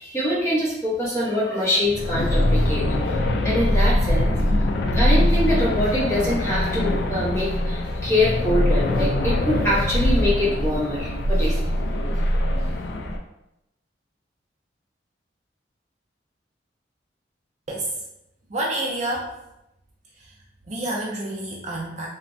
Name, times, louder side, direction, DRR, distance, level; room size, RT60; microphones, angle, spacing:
voice 1, 0.0-2.8 3.4-4.3 4.9-11.6, left 1 dB, 15° left, -8 dB, 0.9 m, -24 dB
sound 1, 1.8-13.2, left 1 dB, 65° left, 0.3 m, -22 dB
voice 2, 17.7-18.0 18.5-19.3 20.2-20.3 20.7-22.1, right 1 dB, 40° right, -2 dB, 0.4 m, -28 dB
3.2 x 2.0 x 2.6 m, 0.87 s
head